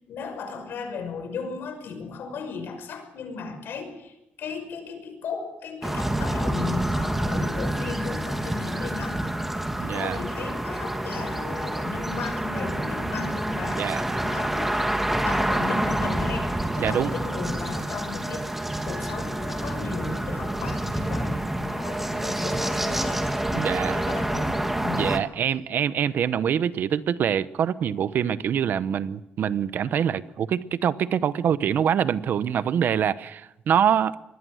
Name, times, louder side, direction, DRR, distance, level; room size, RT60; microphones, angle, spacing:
voice 1, 0.1-4.1 4.4-9.3 9.8-13.8 14.2-14.7 15.1-18.4 18.8-24.5 24.8-25.1, left 5 dB, 80° left, 5.8 m, -35 dB
sound 1, 5.8-25.2, right 1 dB, 5° right, 1.5 m, -28 dB
voice 2, 9.8-10.2 13.6-14.0 16.8-17.2 23.6-24.1 24.9-34.2, right 8 dB, 60° right, 0.9 m, -25 dB
26.0 x 20.5 x 6.4 m
wide cardioid pair, 175°, 4 cm